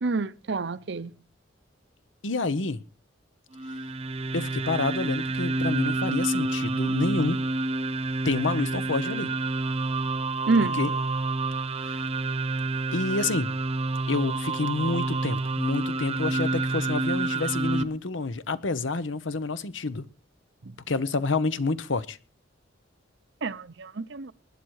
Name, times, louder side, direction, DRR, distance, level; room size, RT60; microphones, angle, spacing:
voice 1, 0.0-1.2 10.5-10.8 20.6-20.7 23.4-24.3, right 3 dB, 65° right, 0.7 m, -28 dB
voice 2, 2.2-2.8 4.3-7.4 8.2-9.3 10.7-10.9 11.8-12.0 12.9-13.5 14.1-20.0 20.9-22.2, left 3 dB, 75° left, 0.9 m, -28 dB
sound 1, 3.5-17.8, right 2 dB, 30° right, 1.0 m, -28 dB
19.5 x 10.0 x 4.7 m
head